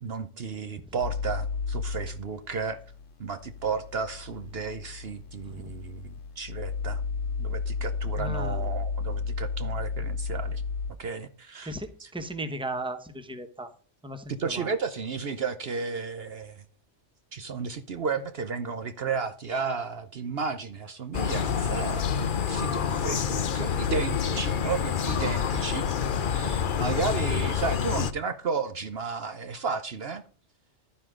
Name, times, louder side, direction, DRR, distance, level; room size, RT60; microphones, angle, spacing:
voice 1, 0.0-2.8 3.2-7.0 7.4-10.6 11.0-11.7 12.0-12.1 14.3-16.6 17.3-25.9 26.3-30.2, right 5 dB, 60° right, 1.0 m, -33 dB
sound 1, 1.0-10.9, left 5 dB, 85° left, 1.0 m, -33 dB
voice 2, 8.2-8.7 11.6-13.7 14.0-14.7 26.8-26.9, right 1 dB, 5° right, 1.1 m, -36 dB
sound 2, 21.1-28.1, left 7 dB, 50° left, 0.8 m, -27 dB
11.5 x 10.0 x 3.8 m
omnidirectional pair, 1.2 m